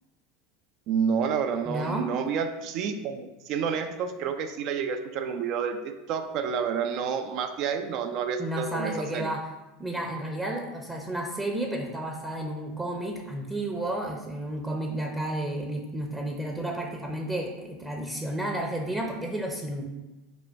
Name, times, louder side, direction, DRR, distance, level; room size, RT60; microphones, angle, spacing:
voice 1, 0.9-9.3, right 6 dB, 55° right, 8 dB, 0.5 m, -29 dB
voice 2, 1.7-2.1 8.4-9.4 9.8-19.9, right 1 dB, 15° right, 1 dB, 0.7 m, -32 dB
5.0 x 2.2 x 4.5 m, 1.0 s
hypercardioid pair, 90°, 0 cm